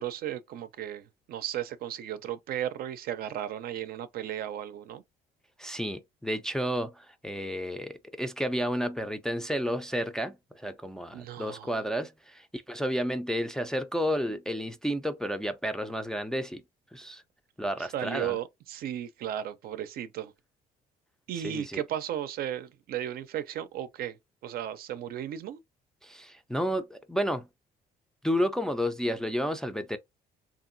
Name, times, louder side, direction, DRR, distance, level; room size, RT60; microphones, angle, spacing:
voice 1, 0.0-5.0 11.1-11.7 17.8-20.3 21.3-24.2 24.4-25.6, right 11 dB, 60° right, 0.5 m, -35 dB
voice 2, 5.6-16.6 16.9-17.2 17.6-18.4 21.4-21.8 26.0-27.5 28.2-30.0, equal, 5° left, 0.4 m, -31 dB
2.9 x 2.5 x 2.6 m
cardioid pair, 110°, 17 cm